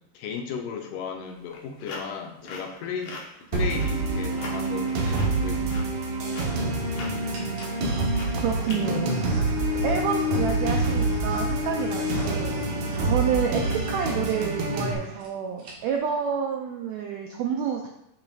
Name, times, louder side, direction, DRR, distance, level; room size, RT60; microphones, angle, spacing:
voice 1, 0.0-3.2 3.5-5.7, left 6 dB, 75° left, 3 dB, 2.2 m, -35 dB
sound 1, 1.3-9.9, left 3 dB, 60° left, 1.8 m, -42 dB
sound 2, 3.5-14.9, right 2 dB, 65° right, 2.2 m, -26 dB
sound 3, 5.5-5.6 6.3-6.8 7.3-7.8 8.5-13.9 14.2-14.4 14.7-14.8 15.0-15.3 15.6-16.0, right 3 dB, 50° right, 2.2 m, -39 dB
voice 2, 8.4-9.5 9.8-12.6 13.0-17.9, right 7 dB, 85° right, 2 dB, 1.6 m, -29 dB
8.7 x 6.2 x 2.4 m, 0.79 s
omnidirectional pair, 3.9 m